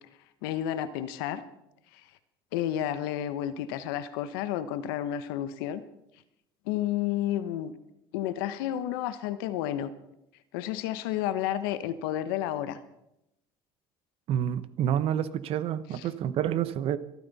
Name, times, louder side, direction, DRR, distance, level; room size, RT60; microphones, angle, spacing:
voice 1, 0.4-1.4 1.9-2.0 2.5-5.8 6.7-7.7 8.1-9.9 10.5-12.8 15.9-16.0, left 11 dB, 85° left, 12 dB, 1.1 m, -31 dB
voice 2, 14.3-17.0, right 10 dB, 55° right, 14 dB, 0.9 m, -28 dB
26.0 x 9.5 x 4.1 m, 0.84 s
supercardioid pair, 100°, 11 cm